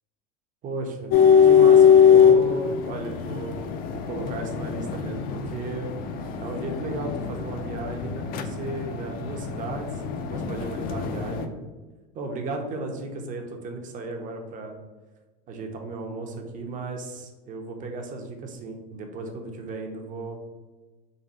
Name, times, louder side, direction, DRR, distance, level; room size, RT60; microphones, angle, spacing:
voice 1, 0.6-1.1 1.4-5.9 6.4-11.6 12.1-14.8 15.5-20.4, right 3 dB, 40° right, 3 dB, 0.9 m, -35 dB
sound 1, 1.1-11.4, left 7 dB, 45° left, 0.5 m, -21 dB
4.0 x 2.4 x 4.0 m, 1.2 s
hypercardioid pair, 100°, 21 cm